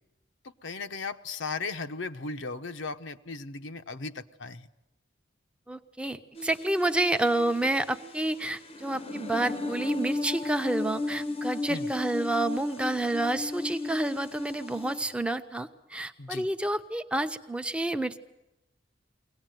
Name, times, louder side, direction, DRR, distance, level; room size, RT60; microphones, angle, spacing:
voice 1, 0.4-4.7 11.7-11.9 16.2-16.5, left 4 dB, 70° left, 8 dB, 0.9 m, -37 dB
voice 2, 5.7-18.2, right 1 dB, 5° right, 7 dB, 0.8 m, -29 dB
sound 1, 6.3-15.1, left 2 dB, 30° left, 0.8 m, -35 dB
23.5 x 18.0 x 9.1 m, 0.95 s
head